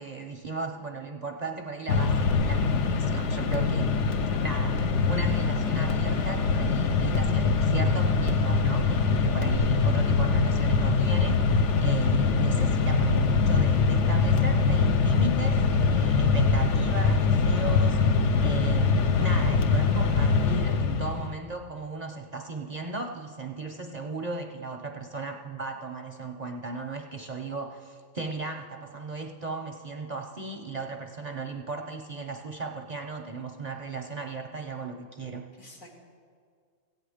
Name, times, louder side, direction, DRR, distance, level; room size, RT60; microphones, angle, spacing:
voice 1, 0.0-18.9 19.2-35.5, right 3 dB, 45° right, 3 dB, 0.6 m, -36 dB
Mechanisms, 1.9-21.3, left 4 dB, 65° left, 0.9 m, -23 dB
sound 1, 2.3-2.4 2.9-3.0 3.5-3.7 4.8-4.9 5.9-6.1 7.1-7.2 8.2-8.5 9.5-9.6, right 1 dB, 30° left, 0.9 m, -37 dB
voice 2, 35.6-35.9, left 1 dB, 80° left, -2 dB, 2.4 m, -50 dB
15.0 x 9.1 x 5.0 m, 2.1 s
omnidirectional pair, 1.4 m